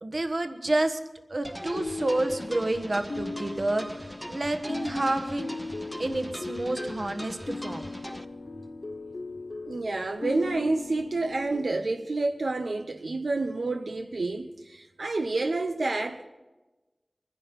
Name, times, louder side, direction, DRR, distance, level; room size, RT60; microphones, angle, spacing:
voice 1, 0.0-1.0 1.3-3.9 4.3-5.5 6.0-7.9, right 2 dB, 55° right, 1.4 m, -29 dB
sound 1, 1.4-8.2, equal, 5° right, 0.8 m, -41 dB
sound 2, 1.6-11.6, left 3 dB, 65° left, 0.7 m, -38 dB
voice 2, 9.6-16.2, right 3 dB, 90° right, 0.9 m, -29 dB
24.0 x 10.5 x 5.4 m
wide cardioid pair, 65°, 0 cm